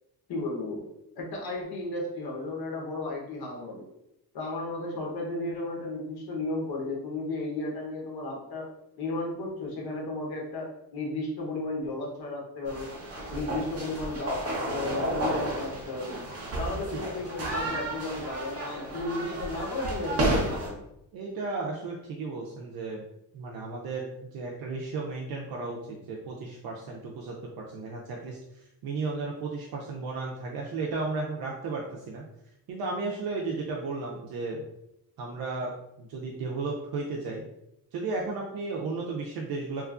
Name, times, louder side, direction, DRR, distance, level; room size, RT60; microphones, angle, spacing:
voice 1, 0.3-0.9 1.2-3.9 4.3-8.7 9.0-12.9 13.3-16.2 16.6-20.8, left 2 dB, 70° left, -1 dB, 1.0 m, -34 dB
sound 1, 12.7-20.7, right 1 dB, 40° right, 0.8 m, -32 dB
voice 2, 21.1-23.0 23.3-28.4 28.8-32.2 32.7-34.6 35.2-35.7 36.0-37.4 37.9-39.9, right 3 dB, 65° right, -2 dB, 0.5 m, -34 dB
2.9 x 2.3 x 2.4 m, 0.83 s
cardioid pair, 125°, 39 cm